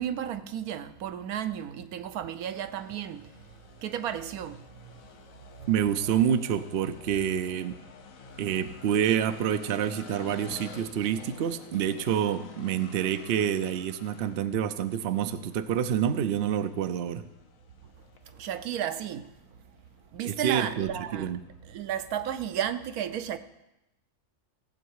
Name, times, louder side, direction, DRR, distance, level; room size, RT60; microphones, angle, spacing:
voice 1, 0.0-3.2 3.8-4.6 5.6-5.7 18.4-19.3 20.1-21.4 21.7-23.4, right 10 dB, 80° right, 1.1 m, -33 dB
sound 1, 2.4-22.3, left 6 dB, 65° left, 1.3 m, -51 dB
voice 2, 5.7-7.7 8.4-17.3 20.2-21.4, right 9 dB, 55° right, 0.7 m, -27 dB
16.5 x 7.9 x 4.7 m
omnidirectional pair, 1.6 m